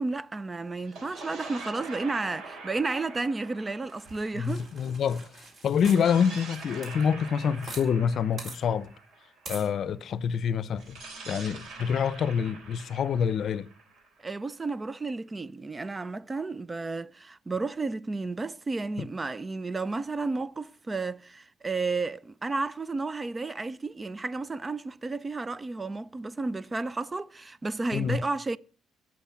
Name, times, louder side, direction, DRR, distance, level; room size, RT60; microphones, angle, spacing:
voice 1, 0.0-4.7 14.2-28.6, right 3 dB, 25° right, 0.5 m, -32 dB
sound 1, 0.8-5.2 5.8-9.7 10.8-14.6, right 3 dB, 75° right, 3.4 m, -45 dB
sound 2, 3.9-7.9 8.1-8.2 8.4-8.6 9.5-9.7, right 2 dB, 45° right, 4.0 m, -44 dB
voice 2, 4.4-5.3 5.6-8.9 9.5-11.0 11.3-13.7 19.0-19.1 27.9-28.2, left 7 dB, 60° left, 0.6 m, -27 dB
17.0 x 6.4 x 5.7 m
cardioid pair, 90°, 0 cm